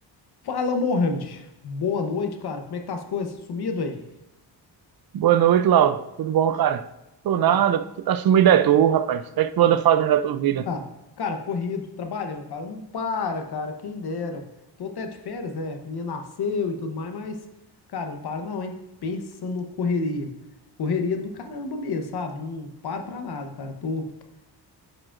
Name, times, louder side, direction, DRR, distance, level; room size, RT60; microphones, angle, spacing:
voice 1, 0.4-4.0 7.5-7.6 9.6-9.7 10.7-10.9 11.2-14.4 14.8-17.4 17.9-20.3 20.8-24.1, left 4 dB, 65° left, 1.0 m, -29 dB
voice 2, 5.1-6.8 7.2-10.7, right 10 dB, 60° right, 0.5 m, -19 dB
11.5 x 4.8 x 2.5 m
cardioid pair, 90°, 42 cm